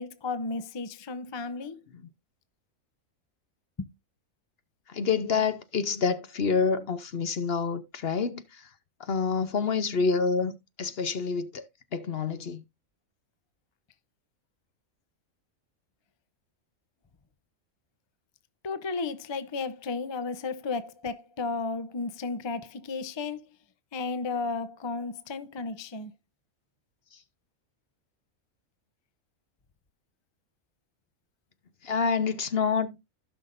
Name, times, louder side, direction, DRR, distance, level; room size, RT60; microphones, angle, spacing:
voice 1, 0.0-1.8 3.8-3.9 18.6-23.4 23.9-26.1, left 4 dB, 30° left, 0.5 m, -33 dB
voice 2, 4.9-8.6 9.0-11.6 11.9-12.6 31.8-33.0, left 5 dB, 55° left, 1.0 m, -27 dB
16.0 x 5.9 x 2.5 m
omnidirectional pair, 1.4 m